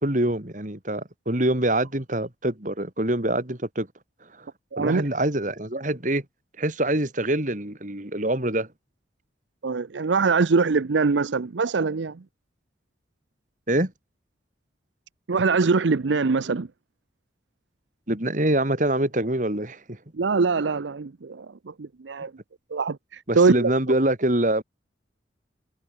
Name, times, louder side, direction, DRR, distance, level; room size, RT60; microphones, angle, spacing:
voice 1, 0.0-3.9 4.4-4.5 4.8-6.2 6.6-8.7 13.7-13.9 18.1-20.0 23.3-24.6, right 1 dB, 45° right, 2.9 m, -25 dB
voice 2, 4.7-5.1 9.6-12.2 15.3-16.7 20.1-22.3 22.7-23.7, right 4 dB, 85° right, 0.6 m, -23 dB
head